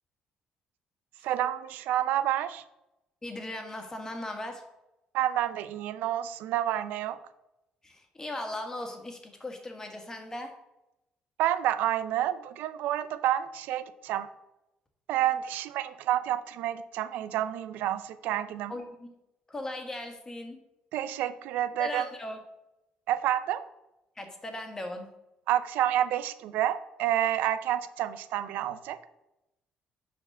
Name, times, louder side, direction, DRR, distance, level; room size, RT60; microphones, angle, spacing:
voice 1, 1.2-2.6 5.1-7.2 11.4-14.3 15.1-18.7 20.9-22.0 23.1-23.6 25.5-29.1, right 12 dB, 85° right, 14 dB, 0.5 m, -29 dB
voice 2, 3.2-4.6 7.8-10.5 18.7-19.1 19.5-20.6 21.8-22.4 24.2-25.1, left 1 dB, 20° left, 4 dB, 1.6 m, -38 dB
6.6 x 5.1 x 6.7 m, 0.92 s
cardioid pair, 105°, 3 cm